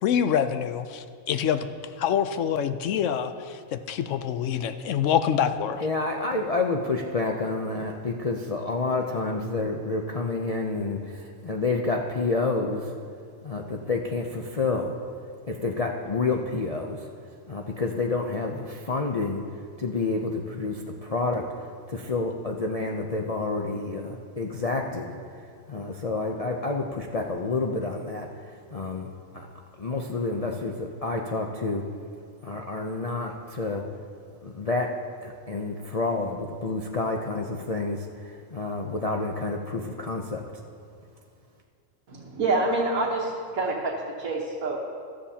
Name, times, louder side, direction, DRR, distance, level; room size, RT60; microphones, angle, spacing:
voice 1, 0.0-1.7 2.0-5.9, left 8 dB, 65° left, 10 dB, 0.9 m, -26 dB
voice 2, 5.8-12.9 13.4-14.9 15.5-17.0 17.5-19.4 19.8-21.4 21.9-25.1 25.7-29.5 29.8-31.8 32.4-33.8 34.4-34.9 35.2-40.4, left 3 dB, 45° left, 1 dB, 0.5 m, -29 dB
voice 3, 42.1-44.8, right 2 dB, 75° right, -4 dB, 1.7 m, -27 dB
17.0 x 12.5 x 2.8 m, 2.2 s
omnidirectional pair, 1.5 m